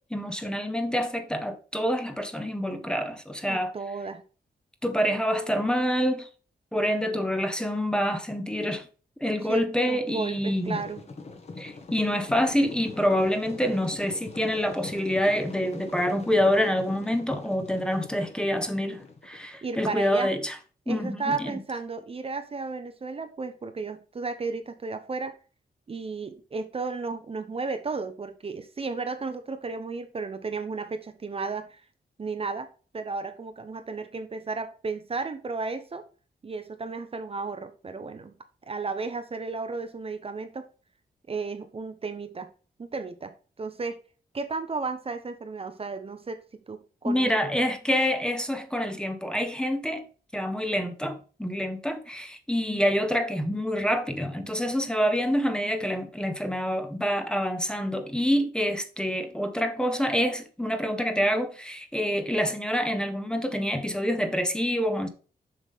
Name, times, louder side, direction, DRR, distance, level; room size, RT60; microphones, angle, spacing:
voice 1, 0.1-3.7 4.8-6.3 6.7-8.9 9.2-10.8 11.6-20.5 20.9-21.6 47.0-50.0 50.3-65.1, equal, 5° left, 1.0 m, -27 dB
voice 2, 3.5-4.2 9.4-11.0 19.6-20.3 20.9-25.3 25.9-31.8 32.2-32.7 32.9-36.0 36.4-38.4 38.7-40.6 41.3-42.5 42.8-43.3 43.6-44.0 44.3-47.4, right 4 dB, 35° right, 0.8 m, -33 dB
sound 1, 10.3-19.4, left 3 dB, 40° left, 1.6 m, -42 dB
7.3 x 6.0 x 3.6 m
wide cardioid pair, 155°, 17 cm